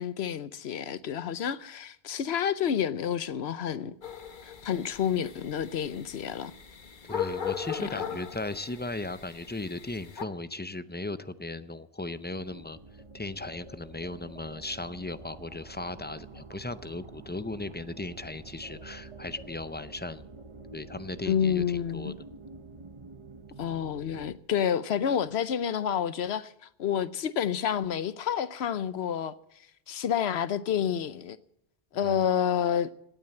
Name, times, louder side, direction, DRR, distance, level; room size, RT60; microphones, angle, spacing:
voice 1, 0.0-3.9 4.4-6.5 7.8-8.1 21.3-22.1 23.6-29.3 29.9-31.4 31.9-32.9, left 8 dB, 80° left, 1.0 m, -29 dB
sound 1, 4.0-10.2, left 8 dB, 50° left, 1.2 m, -38 dB
voice 2, 7.0-12.8 13.1-20.2 20.7-22.1 32.0-32.3, left 2 dB, 15° left, 0.4 m, -37 dB
sound 2, 12.0-24.4, right 3 dB, 30° right, 0.9 m, -48 dB
17.5 x 9.1 x 7.7 m
omnidirectional pair, 1.1 m